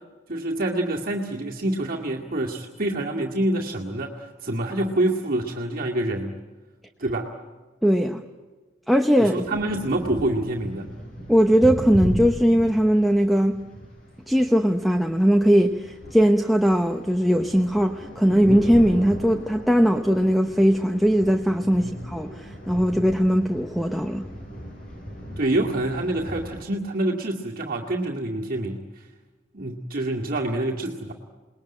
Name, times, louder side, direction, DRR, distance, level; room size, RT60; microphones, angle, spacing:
voice 1, 0.3-6.3 7.0-7.3 9.2-10.9 21.7-22.0 25.4-29.0 29.5-31.1, right 1 dB, 45° right, 2.2 m, -26 dB
voice 2, 7.8-8.2 8.9-9.4 11.3-13.7 14.3-24.2, equal, ahead, 0.9 m, -20 dB
sound 1, 9.6-26.6, equal, 45° left, 7.0 m, -36 dB
28.5 x 20.5 x 8.8 m
head